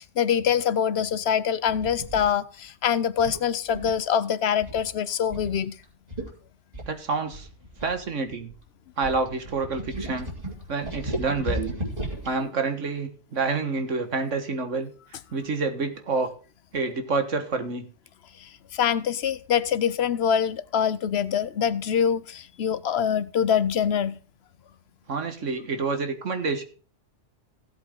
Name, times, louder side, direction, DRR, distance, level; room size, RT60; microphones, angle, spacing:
voice 1, 0.0-5.8 18.7-24.2, left 8 dB, 60° left, 1.0 m, -24 dB
sound 1, 1.7-2.2 3.2-4.1 4.6-4.9 5.3-5.5 5.8-5.9 6.1-6.3 6.7-8.5 9.0-12.3, right 1 dB, 30° right, 3.9 m, -34 dB
voice 2, 6.9-7.5 7.8-8.5 9.0-10.3 10.7-11.7 12.2-14.9 15.3-16.3 16.7-17.9 25.1-26.6, right 4 dB, 80° right, 1.9 m, -28 dB
16.0 x 8.1 x 3.7 m
omnidirectional pair, 1.3 m